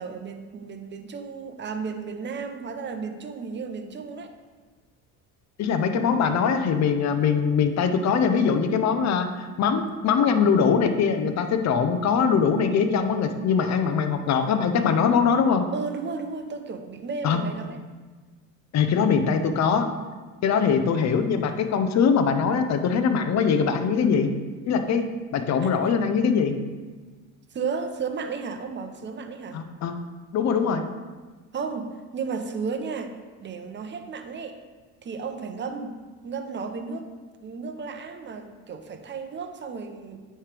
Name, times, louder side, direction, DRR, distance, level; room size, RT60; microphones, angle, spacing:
voice 1, 0.0-4.3 15.7-17.8 20.5-20.8 25.6-25.9 27.5-29.6 31.5-33.1 33.4-34.6 35.0-36.0 36.2-37.1 37.4-40.2, right 5 dB, 30° right, 7 dB, 0.6 m, -33 dB
voice 2, 5.6-15.7 17.2-17.4 18.7-19.8 20.4-24.3 24.7-25.0 25.3-26.6 29.5-30.0 30.3-30.8, left 6 dB, 50° left, 8 dB, 0.6 m, -22 dB
9.3 x 3.3 x 3.3 m, 1.3 s
supercardioid pair, 85°, 36 cm